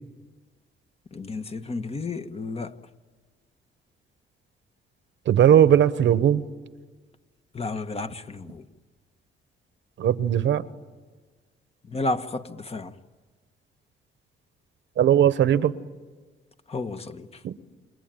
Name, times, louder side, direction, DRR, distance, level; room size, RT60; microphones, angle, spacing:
voice 1, 1.1-2.8 7.5-8.7 11.8-12.9 16.7-17.4, left 3 dB, 30° left, 1.3 m, -32 dB
voice 2, 5.3-6.4 10.0-10.6 15.0-15.7 17.4-17.5, right 10 dB, 65° right, 1.1 m, -18 dB
28.5 x 22.0 x 9.1 m
cardioid pair, 90°, 20 cm